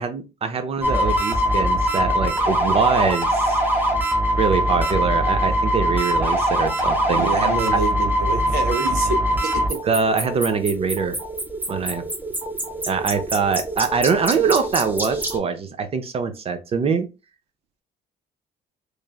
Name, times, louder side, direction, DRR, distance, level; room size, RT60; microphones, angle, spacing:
voice 1, 0.0-3.6 4.4-7.8 9.8-11.2 11.7-12.0 12.9-17.1, right 5 dB, 35° right, 0.4 m, -23 dB
sound 1, 0.8-15.4, equal, 10° right, 0.8 m, -23 dB
voice 2, 7.1-9.8, right 5 dB, 75° right, 0.7 m, -27 dB
3.1 x 2.3 x 2.3 m
cardioid pair, 110°, 17 cm